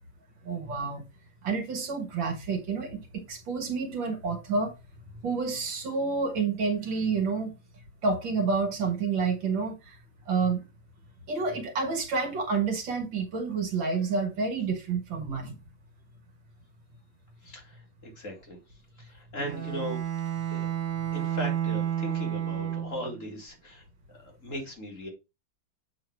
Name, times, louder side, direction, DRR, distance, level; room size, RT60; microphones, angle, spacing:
voice 1, 0.5-1.0 1.4-4.7 5.2-7.5 8.0-9.7 10.3-10.6 11.3-15.6, right 4 dB, 70° right, 2.3 m, -29 dB
voice 2, 17.4-18.6 19.0-20.0 20.5-20.7 21.1-23.8 24.2-25.1, equal, 40° left, 2.4 m, -38 dB
Bowed string instrument, 19.4-23.2, right 10 dB, 40° right, 1.5 m, -31 dB
7.8 x 3.9 x 4.6 m
omnidirectional pair, 2.2 m